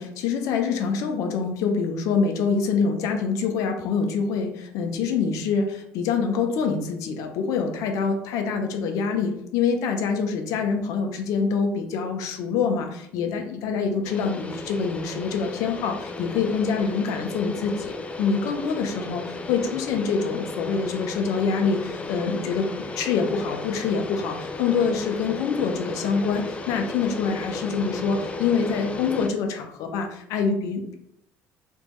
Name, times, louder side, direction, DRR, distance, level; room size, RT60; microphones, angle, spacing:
voice 1, 0.0-30.9, left 5 dB, 70° left, 5 dB, 0.7 m, -25 dB
sound 1, 14.0-29.3, left 3 dB, 20° left, 0.4 m, -34 dB
3.4 x 3.1 x 3.1 m, 0.75 s
supercardioid pair, 100°, 6 cm